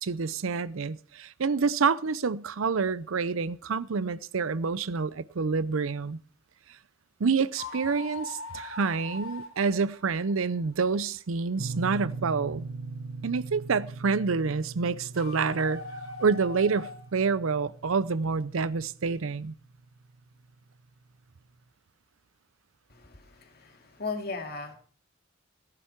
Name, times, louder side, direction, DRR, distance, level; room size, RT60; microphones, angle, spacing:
voice 1, 0.0-6.2 7.2-12.7 13.2-15.8 16.2-19.5, right 5 dB, 80° right, 0.6 m, -28 dB
sound 1, 7.5-10.7 15.1-17.2, left 2 dB, 85° left, 3.2 m, -41 dB
sound 2, 11.6-20.3, right 3 dB, 60° right, 1.0 m, -40 dB
voice 2, 22.9-24.7, left 4 dB, 50° left, 2.2 m, -37 dB
17.0 x 10.0 x 4.6 m
head